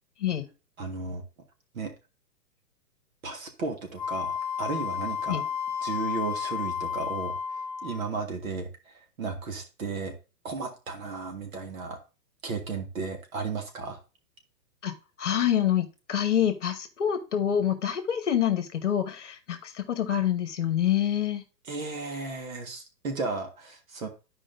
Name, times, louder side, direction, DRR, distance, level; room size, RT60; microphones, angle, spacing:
voice 1, 0.8-1.2 1.7-1.9 3.2-5.4 5.8-7.3 7.8-10.1 10.4-12.0 12.4-14.0 21.6-24.1, right 4 dB, 55° right, 5 dB, 1.6 m, -34 dB
Wind instrument woodwind instrument, 4.0-8.1, left 7 dB, 30° left, 0.9 m, -32 dB
voice 2, 14.8-21.4, left 10 dB, 45° left, 10 dB, 1.2 m, -27 dB
11.0 x 5.0 x 2.6 m, 0.29 s
hypercardioid pair, 175°, 50 cm